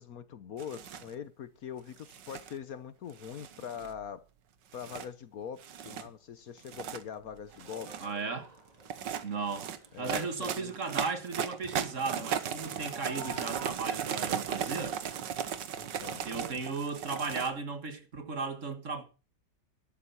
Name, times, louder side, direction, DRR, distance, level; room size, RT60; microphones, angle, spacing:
voice 1, 0.0-4.2 4.7-7.9 9.9-10.8 15.7-16.2, left 8 dB, 60° left, 1.3 m, -43 dB
sound 1, 0.6-1.1 2.0-2.5 3.2-4.0 4.7-5.1 5.6-6.0 6.6-7.0 7.5-8.1 8.8-17.5, right 8 dB, 90° right, 1.8 m, -36 dB
sound 2, 7.5-13.7, equal, 20° right, 3.6 m, -52 dB
voice 2, 8.0-8.5 9.2-9.7 10.0-15.0 16.2-19.0, right 4 dB, 45° right, 2.0 m, -36 dB
12.5 x 11.5 x 5.8 m
omnidirectional pair, 1.9 m